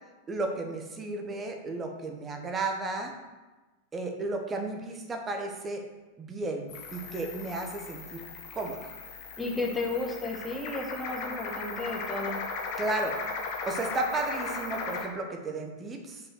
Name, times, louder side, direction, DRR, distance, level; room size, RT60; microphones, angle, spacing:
voice 1, 0.3-3.1 3.9-5.8 6.2-8.2 8.5-8.9 12.8-13.2 13.7-16.2, right 2 dB, 20° right, 3 dB, 1.2 m, -33 dB
sound 1, 6.7-15.1, left 4 dB, 45° left, 1.3 m, -37 dB
voice 2, 9.4-12.4, left 2 dB, 5° left, 0 dB, 1.4 m, -33 dB
5.5 x 5.3 x 6.4 m, 1.2 s
figure-of-eight pair, 90°, 0 cm